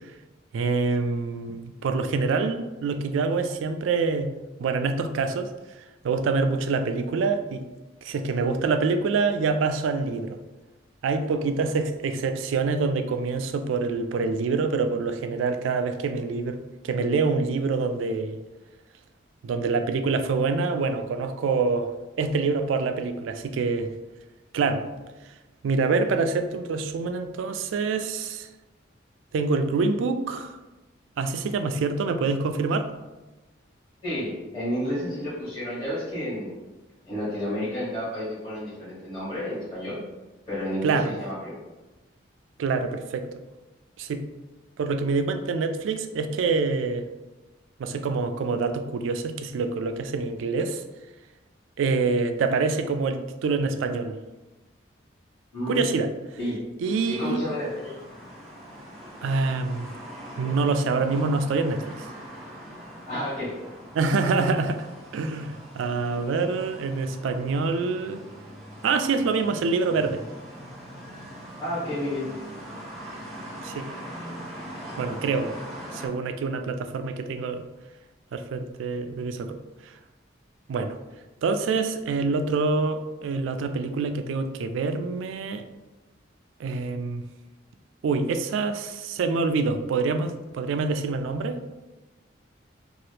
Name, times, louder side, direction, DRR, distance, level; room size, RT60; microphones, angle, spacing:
voice 1, 0.5-4.3 4.6-5.5 6.0-7.6 8.0-10.4 11.0-18.4 19.4-23.9 24.5-24.9 25.6-28.5 29.3-30.5 31.2-32.9 40.8-41.1 42.6-43.3 44.0-44.2 44.8-47.1 47.8-50.8 51.8-54.2 55.7-56.1 56.8-57.4 59.2-59.9 60.4-62.1 63.9-64.9 65.1-68.2 68.8-70.2 73.6-73.9 75.0-75.5 75.9-77.7 78.3-79.6 79.8-79.9 80.7-81.0 81.4-85.6 86.6-87.2 88.0-91.8, right 4 dB, 80° right, 8 dB, 0.3 m, -26 dB
voice 2, 34.0-36.6 37.1-40.0 40.5-41.5 55.5-55.8 56.4-56.6 57.1-58.0 63.1-63.5 71.6-72.3, left 1 dB, 20° left, -13 dB, 1.1 m, -31 dB
sound 1, 56.8-76.1, equal, ahead, 0.7 m, -42 dB
2.9 x 2.4 x 3.2 m, 1.1 s
head